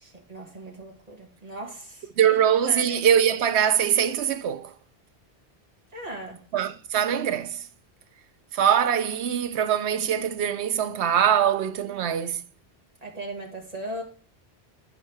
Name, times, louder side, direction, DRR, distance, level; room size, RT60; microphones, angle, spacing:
voice 1, 0.0-2.0 2.6-3.0 5.9-6.4 13.0-14.0, right 1 dB, 35° right, 2.0 m, -38 dB
voice 2, 2.2-4.7 6.5-7.6 8.5-12.4, right 9 dB, 85° right, 1.0 m, -23 dB
9.9 x 5.4 x 3.4 m
omnidirectional pair, 1.1 m